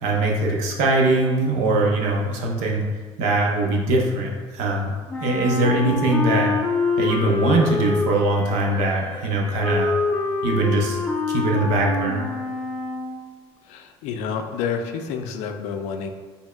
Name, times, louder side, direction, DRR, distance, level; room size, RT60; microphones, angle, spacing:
voice 1, 0.0-2.8 3.2-4.9 5.2-6.5 7.0-9.9 10.4-11.0 11.3-12.3, right 2 dB, 80° right, -1 dB, 0.7 m, -21 dB
Wind instrument woodwind instrument, 5.1-13.2, left 3 dB, 15° left, 0.4 m, -26 dB
voice 2, 13.7-16.1, left 6 dB, 85° left, 6 dB, 0.4 m, -29 dB
4.4 x 3.3 x 2.3 m, 1.4 s
cardioid pair, 130°, 12 cm